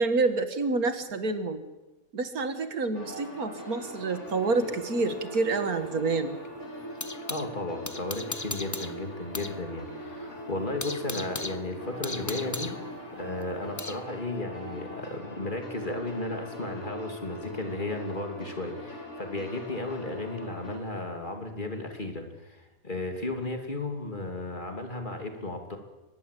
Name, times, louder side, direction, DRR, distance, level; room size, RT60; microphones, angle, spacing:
voice 1, 0.0-1.6 2.1-6.4 11.2-11.3, right 3 dB, 90° right, 9 dB, 2.3 m, -28 dB
sound 1, 2.9-20.8, equal, 55° left, 3.7 m, -41 dB
sound 2, 4.3-7.5 7.9-9.6 9.9-10.0 10.4-14.1, left 3 dB, 20° left, 0.6 m, -38 dB
voice 2, 7.3-12.7 13.1-25.8, left 2 dB, 35° left, 4 dB, 3.0 m, -34 dB
23.5 x 20.0 x 8.4 m, 1.1 s
omnidirectional pair, 1.5 m